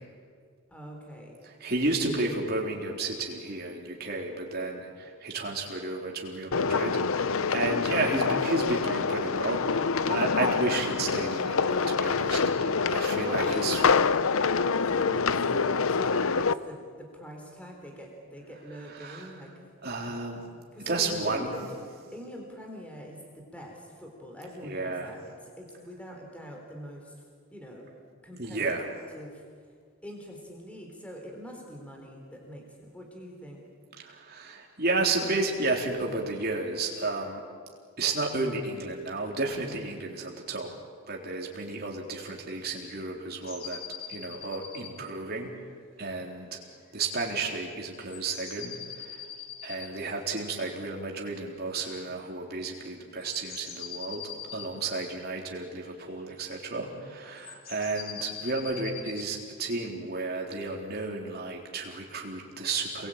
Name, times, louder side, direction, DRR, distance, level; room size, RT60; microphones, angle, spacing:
voice 1, 0.7-1.4 13.2-14.0 14.5-19.5 20.7-21.7 22.1-27.2 27.5-27.9 28.2-28.6 29.1-29.4 30.0-33.7, equal, 5° left, 1 dB, 3.7 m, -44 dB
voice 2, 1.6-13.9 18.9-19.3 19.8-20.5 20.8-21.5 24.6-25.1 28.4-28.9 34.0-37.4 38.0-40.7 41.1-43.8 44.1-45.5 46.0-46.6 46.9-49.2 49.6-63.1, right 3 dB, 45° right, 0 dB, 3.9 m, -32 dB
sound 1, 6.5-16.5, left 5 dB, 70° left, 0.7 m, -26 dB
sound 2, 43.4-45.0 45.4-45.5 46.9-47.0 48.0-50.0 53.2-54.7 55.9-56.9 57.4-59.3, left 8 dB, 40° left, 3.4 m, -42 dB
29.0 x 21.5 x 8.9 m, 2.1 s
head